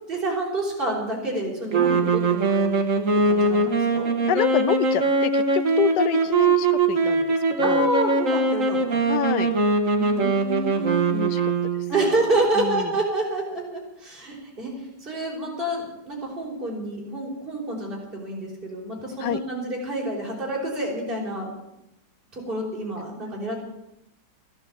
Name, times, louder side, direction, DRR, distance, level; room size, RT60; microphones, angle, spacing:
voice 1, 0.1-2.7 3.2-4.1 7.6-9.0 9.8-11.2 11.9-14.7 15.0-21.5 22.3-23.6, right 2 dB, 30° right, -3 dB, 5.0 m, -28 dB
sound 1, 1.7-12.1, right 3 dB, 45° right, 2.1 m, -22 dB
voice 2, 4.3-7.9 9.1-9.5 11.1-11.4 12.6-12.9 19.2-19.4, left 10 dB, 75° left, 14 dB, 1.4 m, -27 dB
14.5 x 10.5 x 8.9 m, 0.87 s
omnidirectional pair, 1.9 m